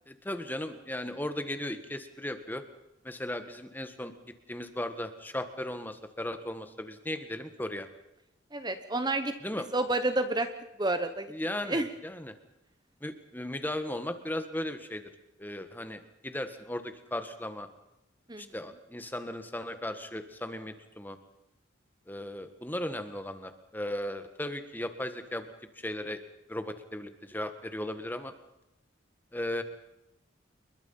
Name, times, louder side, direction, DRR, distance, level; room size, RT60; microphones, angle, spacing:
voice 1, 0.1-2.6 3.0-7.9 9.4-9.7 11.3-12.3 13.0-15.1 15.4-17.7 18.4-21.2 22.1-25.5 25.7-26.2 26.5-28.3 29.3-29.6, left 1 dB, 10° left, 9 dB, 1.7 m, -36 dB
voice 2, 8.5-9.3 9.7-10.5 10.8-11.9 18.3-18.4, right 2 dB, 20° right, 9 dB, 1.2 m, -30 dB
28.5 x 22.0 x 5.7 m, 0.87 s
head